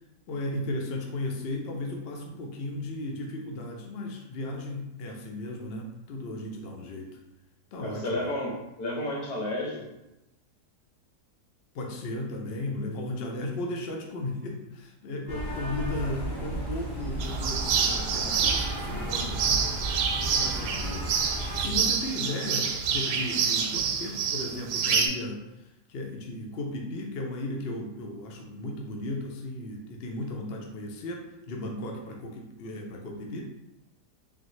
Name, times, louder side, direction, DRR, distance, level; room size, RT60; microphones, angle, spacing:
voice 1, 0.3-7.2 7.7-8.2 11.7-19.7 20.1-33.4, left 1 dB, 55° left, 1 dB, 0.7 m, -35 dB
voice 2, 7.8-9.9, left 1 dB, 80° left, -3 dB, 1.5 m, -31 dB
sound 1, 15.3-21.6, right 1 dB, 35° left, 1.3 m, -34 dB
sound 2, 17.2-25.1, right 6 dB, 80° right, 1.1 m, -27 dB
3.8 x 3.7 x 3.1 m, 0.92 s
omnidirectional pair, 1.6 m